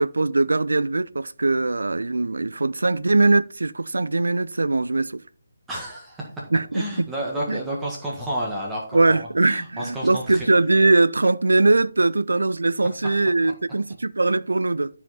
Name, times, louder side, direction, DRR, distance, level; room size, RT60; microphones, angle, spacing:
voice 1, 0.0-5.2 6.5-7.1 7.5-7.6 8.9-15.0, right 2 dB, 70° right, 0.5 m, -21 dB
voice 2, 5.7-6.5 6.7-10.5, right 1 dB, 10° right, 1.6 m, -31 dB
13.5 x 5.0 x 4.1 m
figure-of-eight pair, 145°, 0 cm